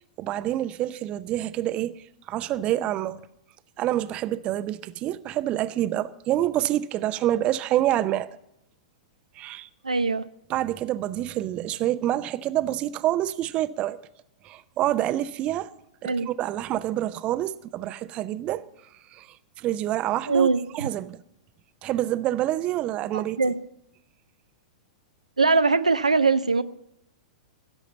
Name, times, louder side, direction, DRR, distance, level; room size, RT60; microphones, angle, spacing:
voice 1, 0.2-2.0 2.3-3.2 3.8-8.3 9.4-9.7 10.5-14.0 14.4-15.7 16.0-18.6 19.1-19.3 19.6-20.5 20.7-21.2 21.8-23.4, right 13 dB, 30° right, 0.6 m, -27 dB
voice 2, 9.8-10.2 16.0-16.3 20.3-20.6 23.4-23.6 25.4-26.6, right 4 dB, 80° right, 0.6 m, -21 dB
16.0 x 7.1 x 7.9 m
figure-of-eight pair, 100°, 4 cm